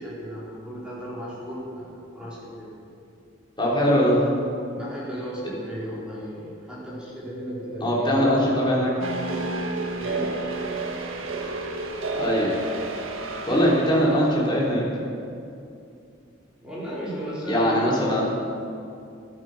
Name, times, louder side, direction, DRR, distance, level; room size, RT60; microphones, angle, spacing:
voice 1, 0.0-2.8 4.7-8.8 10.0-10.4 16.6-18.2, equal, 5° right, -9 dB, 4.3 m, -35 dB
voice 2, 3.6-4.1 7.8-8.9 12.2-12.5 13.5-14.8 17.5-18.2, equal, 25° left, -5 dB, 3.3 m, -21 dB
sound 1, 9.0-14.3, right 2 dB, 80° right, 1.4 m, -31 dB
13.5 x 11.5 x 6.5 m, 2.5 s
head